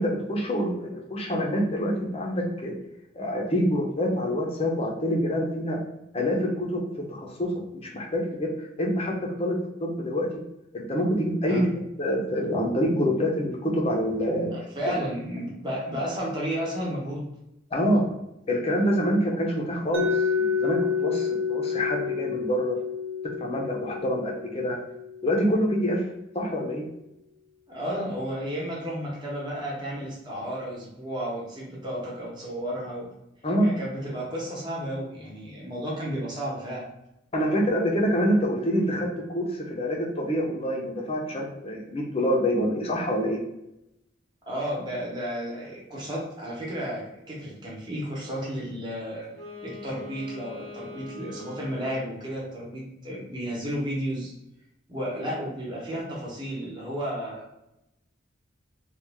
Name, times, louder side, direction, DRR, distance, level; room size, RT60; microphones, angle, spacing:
voice 1, 0.0-2.7 3.1-5.8 6.1-9.5 9.8-10.3 10.7-11.6 12.0-14.5 14.8-14.9 17.7-18.1 18.5-22.8 23.2-24.8 25.2-26.0 26.3-26.8 33.4-33.7 37.3-39.1 39.3-43.4, equal, 30° left, 0 dB, 0.7 m, -26 dB
voice 2, 14.5-17.3 27.7-33.1 33.6-36.8 44.5-49.3 49.6-54.3 54.9-57.5, equal, 25° right, -4 dB, 1.0 m, -32 dB
Mallet percussion, 19.9-25.8, left 6 dB, 75° right, 0.5 m, -29 dB
Wind instrument woodwind instrument, 49.2-52.2, left 2 dB, 90° right, 0.9 m, -42 dB
3.0 x 2.4 x 3.5 m, 0.86 s
head